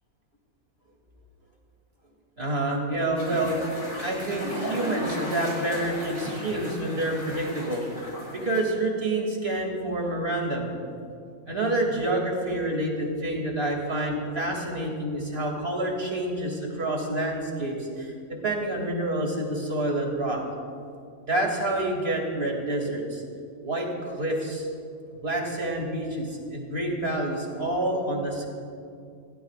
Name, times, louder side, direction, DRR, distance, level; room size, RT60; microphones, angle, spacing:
voice 1, 2.4-3.6 4.0-7.8 8.3-10.7 11.5-20.4 21.3-23.2 23.6-24.7 25.2-28.4, right 1 dB, 40° right, 0 dB, 2.9 m, -28 dB
sound 1, 3.2-8.6, equal, 50° left, 4.4 m, -35 dB
27.5 x 17.0 x 2.5 m, 2.4 s
omnidirectional pair, 1.6 m